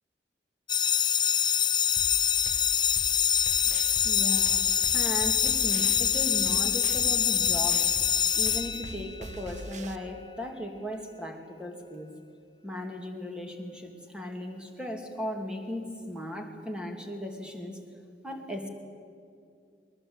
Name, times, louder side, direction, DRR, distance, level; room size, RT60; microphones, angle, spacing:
sound 1, 0.7-9.4, left 8 dB, 25° left, 0.6 m, -25 dB
sound 2, 2.0-10.0, right 2 dB, 45° right, 1.0 m, -42 dB
voice 1, 4.0-7.9 8.4-12.1 12.6-17.8 18.2-18.7, left 1 dB, 5° right, 3 dB, 2.7 m, -37 dB
22.0 x 20.0 x 8.9 m, 2.3 s
head